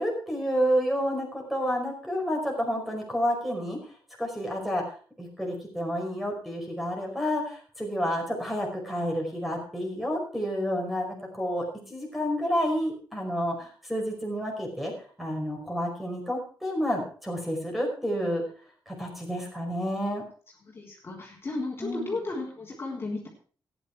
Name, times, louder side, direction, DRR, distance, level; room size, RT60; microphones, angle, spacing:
voice 1, 0.0-3.8 4.2-4.8 5.2-14.9 15.2-18.4 18.9-20.2 21.8-22.2, equal, ahead, 0 dB, 5.1 m, -30 dB
voice 2, 20.7-23.3, left 2 dB, 35° left, -3 dB, 3.7 m, -34 dB
14.5 x 10.0 x 4.7 m, 0.42 s
cardioid pair, 120°, 7 cm